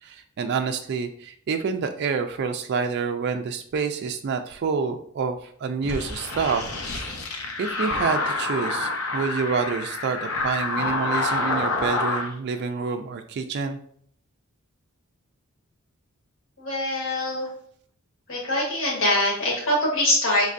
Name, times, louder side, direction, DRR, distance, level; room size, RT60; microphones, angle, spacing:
voice 1, 0.0-6.7 7.0-7.1 7.6-13.8, right 5 dB, 55° right, 6 dB, 0.3 m, -28 dB
sound 1, 5.8-12.3, left 2 dB, 85° left, 0.7 m, -27 dB
voice 2, 16.6-17.5 18.3-20.5, left 1 dB, 65° left, -4 dB, 1.4 m, -23 dB
5.3 x 3.2 x 2.5 m, 0.63 s
head